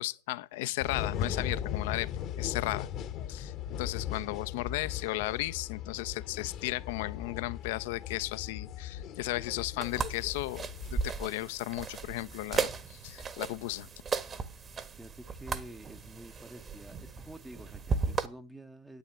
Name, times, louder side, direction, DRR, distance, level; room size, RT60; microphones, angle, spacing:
voice 1, 0.0-2.1 2.4-2.9 3.3-13.9, left 18 dB, 55° left, 0.8 m, -35 dB
sound 1, 0.8-11.1, left 9 dB, 35° left, 1.2 m, -38 dB
sound 2, 9.8-18.3, right 5 dB, 20° right, 1.3 m, -36 dB
voice 2, 15.0-19.0, right 1 dB, 5° right, 0.9 m, -49 dB
10.5 x 8.6 x 9.5 m
hypercardioid pair, 105°, 0 cm